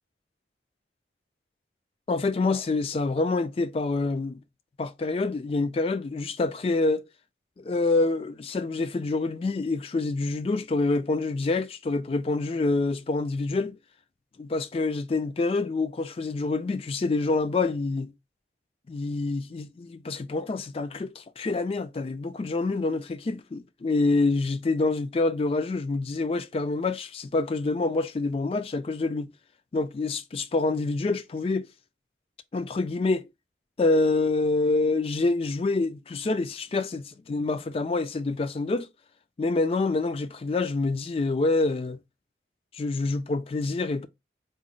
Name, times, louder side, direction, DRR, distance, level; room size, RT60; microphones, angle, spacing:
voice 1, 2.1-4.4 4.8-7.0 7.6-13.8 14.4-18.1 18.9-29.3 29.7-31.7 32.5-33.2 33.8-38.9 39.4-42.0 42.7-44.1, left 3 dB, 30° left, 0.3 m, -26 dB
3.9 x 2.0 x 3.7 m
head